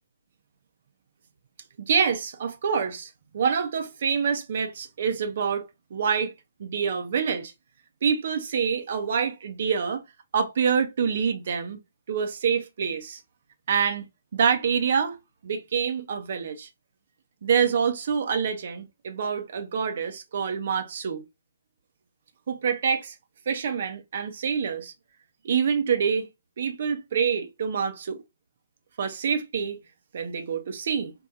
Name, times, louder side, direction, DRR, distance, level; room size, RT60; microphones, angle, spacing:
voice 1, 1.8-6.3 6.6-7.5 8.0-10.0 10.3-11.8 12.1-13.2 13.7-14.0 14.3-15.2 15.4-16.7 17.4-21.2 22.5-23.2 23.5-24.9 25.4-26.3 26.6-28.2 29.0-29.8 30.1-31.1, right 6 dB, 45° right, 0.6 m, -26 dB
4.3 x 2.2 x 2.6 m
figure-of-eight pair, 130°, 0 cm